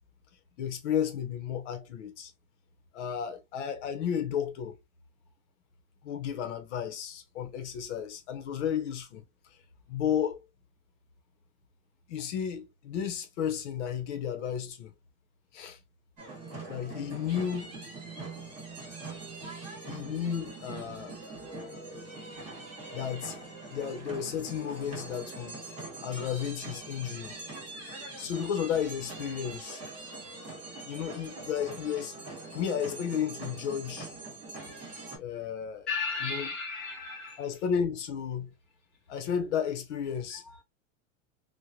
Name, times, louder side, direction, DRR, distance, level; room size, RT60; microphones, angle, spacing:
voice 1, 0.6-2.3 2.9-4.8 6.0-9.2 9.9-10.4 12.1-14.9 15.5-15.8 16.7-17.7 19.8-21.2 22.9-23.3 23.7-25.6 26.0-27.3 28.2-29.8 30.8-32.2 32.5-34.1 35.2-35.9 36.2-36.5 37.4-38.5 39.1-40.4, left 8 dB, 60° left, 0.8 m, -33 dB
sound 1, 16.2-35.2, right 3 dB, 20° right, 1.5 m, -43 dB
voice 2, 35.9-37.5 40.3-40.6, left 4 dB, ahead, 0.5 m, -35 dB
3.2 x 2.2 x 2.7 m
supercardioid pair, 175°, 39 cm